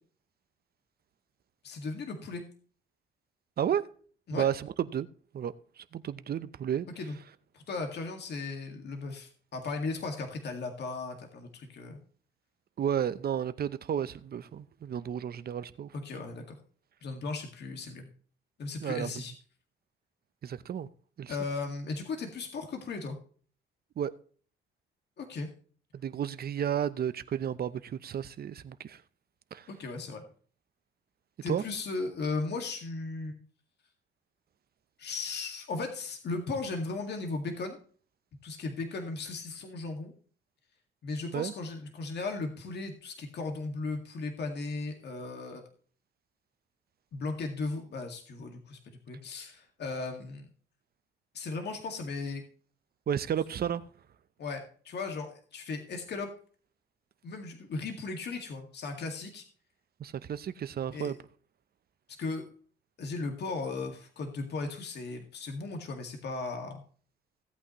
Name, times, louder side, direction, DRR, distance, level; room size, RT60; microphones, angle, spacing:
voice 1, 1.6-2.4 4.3-4.5 7.0-7.2 7.5-12.0 15.9-16.6 17.0-18.1 18.6-19.3 21.3-23.2 25.2-25.5 29.7-30.2 31.4-33.4 35.0-37.8 38.4-40.1 41.0-45.6 47.1-48.8 49.1-50.5 51.3-52.4 54.4-56.3 57.2-59.4 60.9-61.1 62.2-62.5 63.0-66.8, left 3 dB, 60° left, 2.0 m, -36 dB
voice 2, 3.6-3.9 4.3-5.1 5.3-6.9 12.8-15.9 18.8-19.1 20.4-20.9 21.2-21.3 24.0-24.1 25.9-29.0 29.5-29.7 31.5-31.6 41.3-41.5 53.1-53.8 60.0-61.2, right 9 dB, 50° right, 0.7 m, -32 dB
16.5 x 8.5 x 3.1 m
cardioid pair, 90°, 20 cm